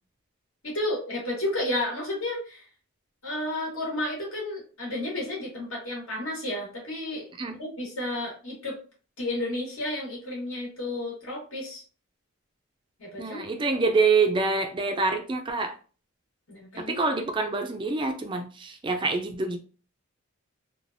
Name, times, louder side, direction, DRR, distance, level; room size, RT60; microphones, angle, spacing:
voice 1, 0.6-2.6 3.2-7.3 7.6-8.8 9.2-11.8 13.0-13.4 16.5-17.0, left 1 dB, 75° left, 1.3 m, -32 dB
voice 2, 13.2-15.8 16.8-19.6, right 4 dB, 20° right, 0.3 m, -26 dB
3.2 x 2.2 x 2.5 m
head